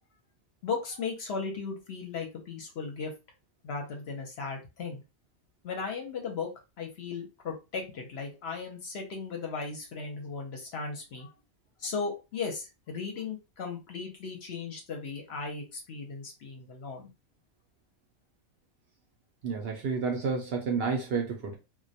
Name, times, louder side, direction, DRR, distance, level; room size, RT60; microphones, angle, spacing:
voice 1, 0.6-3.1 3.6-5.0 5.6-6.5 6.8-11.3 11.8-17.1, left 5 dB, 60° left, 0.8 m, -36 dB
voice 2, 19.4-21.6, right 5 dB, 65° right, 0.6 m, -30 dB
2.2 x 2.1 x 2.6 m
omnidirectional pair, 1.3 m